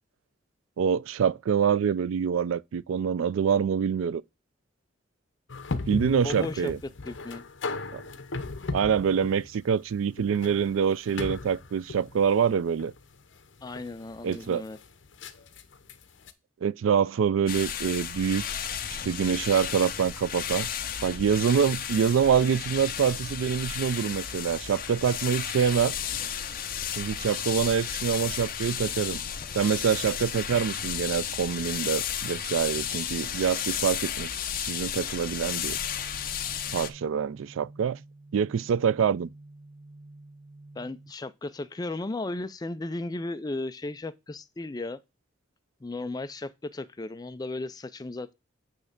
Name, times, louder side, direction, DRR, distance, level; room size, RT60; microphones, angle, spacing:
voice 1, 0.8-4.2 5.9-6.8 7.9-8.0 8.7-12.9 14.2-14.6 16.6-18.4 19.1-20.7 21.0-26.0 27.0-29.2 29.5-34.3 34.6-35.8 36.7-38.0 38.3-39.3, right 7 dB, 85° right, 0.3 m, -25 dB
sound 1, 5.5-16.3, left 3 dB, 70° left, 0.9 m, -37 dB
voice 2, 6.2-6.7 7.1-7.4 13.6-14.8 40.8-45.0 45.8-48.3, left 2 dB, 20° left, 0.4 m, -35 dB
sound 2, 17.5-36.9, left 8 dB, 45° left, 0.7 m, -33 dB
sound 3, 35.6-41.1, right 2 dB, 60° right, 0.9 m, -49 dB
8.6 x 3.3 x 6.4 m
head